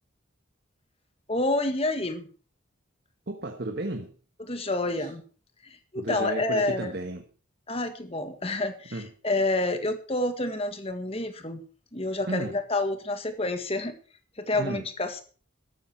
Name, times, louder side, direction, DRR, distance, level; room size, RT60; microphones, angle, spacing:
voice 1, 1.3-2.3 4.4-5.2 5.6-6.9 7.7-11.6 11.9-13.9 14.4-15.2, left 2 dB, 30° left, 1.8 m, -28 dB
voice 2, 3.3-4.1 5.0-5.1 5.9-7.2 8.9-9.1 12.3-12.5 14.5-14.9, right 2 dB, 55° right, 1.4 m, -33 dB
13.5 x 12.5 x 4.5 m
head